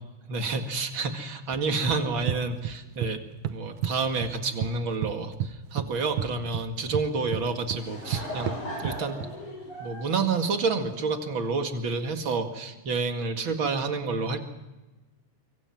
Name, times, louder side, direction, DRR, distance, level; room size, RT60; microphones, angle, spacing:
voice 1, 0.3-3.2 3.5-9.2 9.8-14.4, right 4 dB, 45° right, 5 dB, 2.5 m, -29 dB
sound 1, 1.5-3.1 3.4-4.7 5.0-9.3, right 10 dB, 85° right, 2.5 m, -32 dB
Laughter / Crowd, 7.5-11.3, equal, 80° left, 8.4 m, -38 dB
26.0 x 24.0 x 6.0 m, 1.1 s
omnidirectional pair, 3.5 m